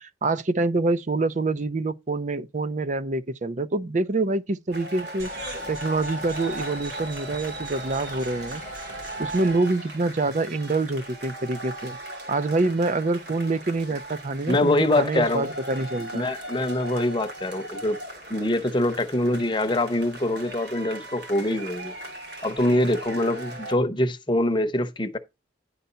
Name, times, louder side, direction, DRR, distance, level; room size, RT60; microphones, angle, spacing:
voice 1, 0.0-5.3 5.7-8.6 9.2-12.0 12.3-16.3, right 3 dB, 40° right, 0.5 m, -26 dB
sound 1, 4.7-23.7, right 1 dB, 65° right, 2.3 m, -38 dB
sound 2, 5.2-9.6, right 2 dB, 90° right, 2.5 m, -42 dB
voice 2, 14.5-15.5 16.1-18.0 18.3-21.9 22.4-25.2, left 1 dB, 25° left, 0.8 m, -24 dB
10.5 x 4.0 x 5.6 m
head